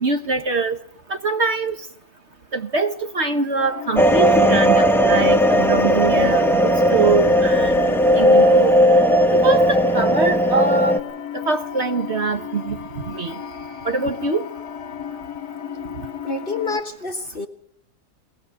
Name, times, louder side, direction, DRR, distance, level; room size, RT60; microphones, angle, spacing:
voice 1, 0.0-0.8 1.1-1.7 2.5-7.8 8.2-8.7 9.3-11.0 11.3-12.8 13.1-13.3 13.8-14.5, right 3 dB, 45° right, 7 dB, 1.1 m, -23 dB
sound 1, 3.6-16.8, left 8 dB, 70° left, 1.7 m, -34 dB
sound 2, 4.0-11.0, equal, ahead, 1.0 m, -16 dB
voice 2, 16.2-17.5, left 3 dB, 35° left, 5 dB, 1.3 m, -27 dB
21.5 x 18.5 x 6.9 m, 0.72 s
omnidirectional pair, 1.8 m